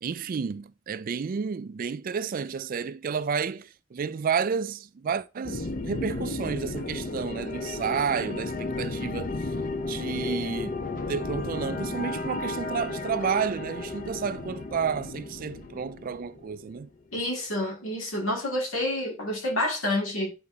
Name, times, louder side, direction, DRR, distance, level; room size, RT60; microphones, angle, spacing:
voice 1, 0.0-9.4 9.9-10.8 11.1-16.9, right 6 dB, 40° right, 0.3 m, -31 dB
sound 1, 5.4-16.8, left 2 dB, 40° left, 0.7 m, -33 dB
voice 2, 17.1-20.3, left 1 dB, 80° left, 2.5 m, -28 dB
11.5 x 4.2 x 2.8 m
head